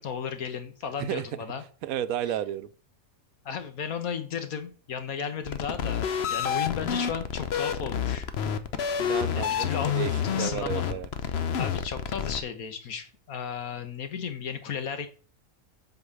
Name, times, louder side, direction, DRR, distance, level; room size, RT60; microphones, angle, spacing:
voice 1, 0.0-1.6 3.4-8.3 9.3-10.0 10.2-11.0 11.3-15.1, left 7 dB, 85° left, 1.7 m, -34 dB
voice 2, 1.8-2.7 9.0-11.1, right 11 dB, 90° right, 1.1 m, -32 dB
sound 1, 5.5-12.4, left 8 dB, 55° left, 0.9 m, -29 dB
8.1 x 4.7 x 6.9 m
omnidirectional pair, 1.5 m